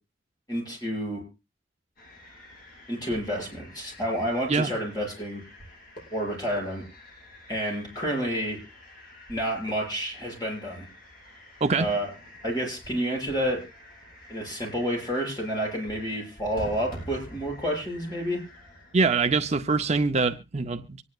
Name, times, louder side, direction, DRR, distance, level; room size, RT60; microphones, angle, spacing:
voice 1, 0.5-1.2 2.9-5.4 6.1-6.9 7.5-8.6 9.3-10.9 11.8-12.1 12.4-13.6 14.3-18.4, equal, 20° left, 6.9 m, -29 dB
sound 1, 2.0-19.6, equal, 50° left, 7.1 m, -47 dB
voice 2, 18.9-21.0, right 4 dB, 35° right, 0.6 m, -24 dB
24.5 x 9.8 x 2.4 m
head